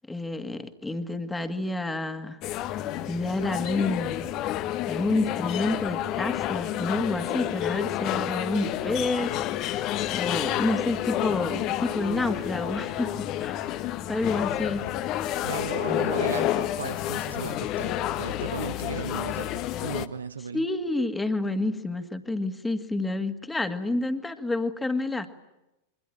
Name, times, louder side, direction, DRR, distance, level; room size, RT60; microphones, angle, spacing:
voice 1, 0.1-2.4 3.1-4.3 4.9-13.6 14.1-15.2 20.5-25.4, left 2 dB, 10° left, 2.1 m, -29 dB
sound 1, 2.4-20.1, left 12 dB, 40° left, 1.3 m, -30 dB
sound 2, 12.8-18.5, left 11 dB, 60° left, 3.9 m, -53 dB
voice 2, 15.4-20.7, right 6 dB, 70° right, 0.9 m, -36 dB
27.0 x 23.5 x 9.0 m
figure-of-eight pair, 90°, 0 cm